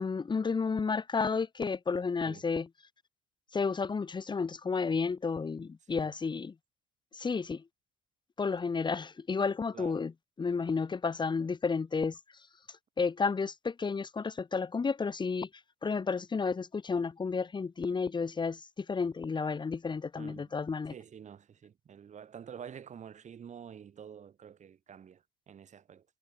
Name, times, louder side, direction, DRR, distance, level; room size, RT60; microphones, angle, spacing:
voice 1, 0.0-2.7 3.5-6.5 7.1-7.6 8.4-10.1 10.4-12.2 13.0-15.5 15.8-20.9, left 5 dB, 25° left, 2.7 m, -31 dB
voice 2, 20.2-20.5 20.9-26.0, right 8 dB, 45° right, 6.9 m, -48 dB
cardioid pair, 110°, 17 cm